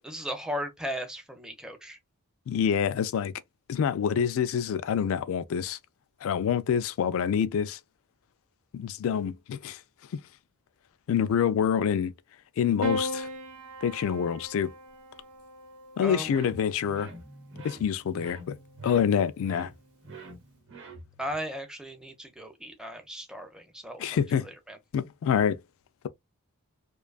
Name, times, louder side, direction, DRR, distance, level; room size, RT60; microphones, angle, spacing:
voice 1, 0.0-2.0 16.0-16.3 21.2-24.2 24.7-24.8, equal, 5° right, 0.4 m, -36 dB
voice 2, 2.5-3.3 3.7-5.8 6.2-7.8 8.7-9.8 10.1-10.2 11.1-12.1 12.6-13.3 13.8-14.7 16.0-17.1 17.6-18.6 18.8-19.7 24.0-24.5 24.9-25.6, left 8 dB, 65° left, 0.3 m, -26 dB
Piano, 12.8-17.3 18.5-19.2, equal, 85° right, 0.7 m, -38 dB
sound 1, 16.2-21.4, right 2 dB, 55° right, 0.8 m, -46 dB
2.5 x 2.3 x 2.3 m
head